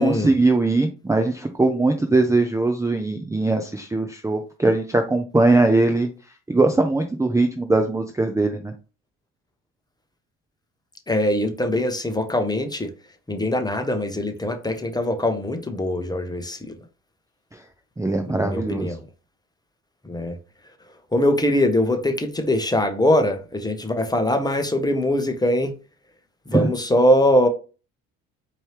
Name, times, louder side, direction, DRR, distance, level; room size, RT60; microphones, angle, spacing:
voice 1, 0.0-6.1 6.5-8.7 18.0-18.9 26.5-26.7, right 2 dB, 10° right, 0.6 m, -20 dB
voice 2, 11.1-12.9 13.3-16.8 18.2-19.0 20.0-20.4 21.1-25.7 26.5-27.5, left 1 dB, 10° left, 1.0 m, -22 dB
4.5 x 3.0 x 3.2 m
supercardioid pair, 70°, 34 cm